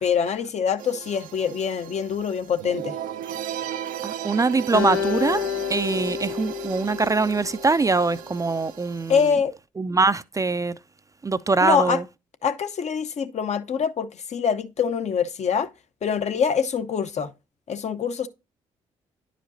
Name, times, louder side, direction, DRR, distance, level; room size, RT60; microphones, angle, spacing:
voice 1, 0.0-3.0 9.1-9.5 11.6-12.0 12.4-15.7 16.0-17.3 17.7-18.3, left 7 dB, 50° left, 0.7 m, -24 dB
sound 1, 0.8-9.3, right 11 dB, 70° right, 0.6 m, -36 dB
voice 2, 4.0-9.3 9.8-10.7 11.2-12.0, right 3 dB, 25° right, 0.4 m, -23 dB
Acoustic guitar, 4.7-8.1, left 10 dB, 80° left, 0.8 m, -30 dB
10.0 x 5.0 x 2.6 m
hypercardioid pair, 50°, 15 cm